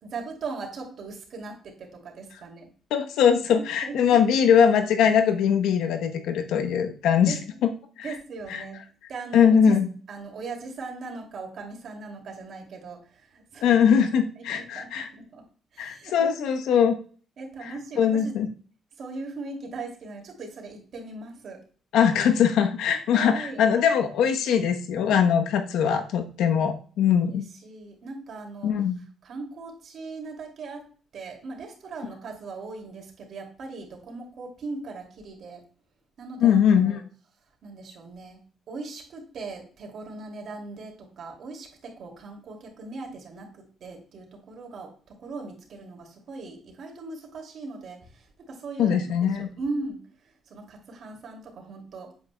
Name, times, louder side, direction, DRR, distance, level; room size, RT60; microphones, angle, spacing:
voice 1, 0.0-2.7 3.6-4.2 7.3-7.6 8.0-8.8 9.1-9.8 10.1-14.1 14.4-15.5 15.7-16.3 17.4-18.4 19.0-21.6 23.1-23.7 25.1-25.2 27.6-28.8 29.2-30.9 31.1-35.6 36.2-37.0 37.6-52.2, right 3 dB, 60° right, 1 dB, 2.6 m, -39 dB
voice 2, 2.9-7.3 7.6-7.7 8.5-8.6 9.3-9.9 13.6-15.1 15.8-17.0 18.0-18.5 21.9-27.5 28.6-29.0 36.4-37.0 48.8-49.5, left 7 dB, 85° left, 6 dB, 1.0 m, -21 dB
8.4 x 8.4 x 2.2 m, 0.42 s
cardioid pair, 90°, 0 cm